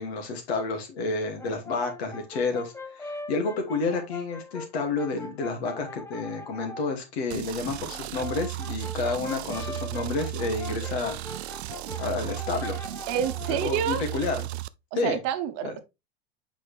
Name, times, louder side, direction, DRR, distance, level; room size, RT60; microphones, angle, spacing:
voice 1, 0.0-11.2 12.0-12.8 13.5-14.5 14.9-15.2 15.6-15.7, left 3 dB, 75° left, 2.4 m, -30 dB
Brass instrument, 1.4-6.9 7.9-13.7, left 3 dB, 10° left, 0.7 m, -41 dB
sound 1, 7.3-14.7, right 17 dB, 80° right, 0.5 m, -35 dB
voice 2, 13.1-14.0 15.0-15.8, right 9 dB, 50° right, 1.1 m, -28 dB
6.3 x 4.8 x 3.3 m
hypercardioid pair, 100°, 32 cm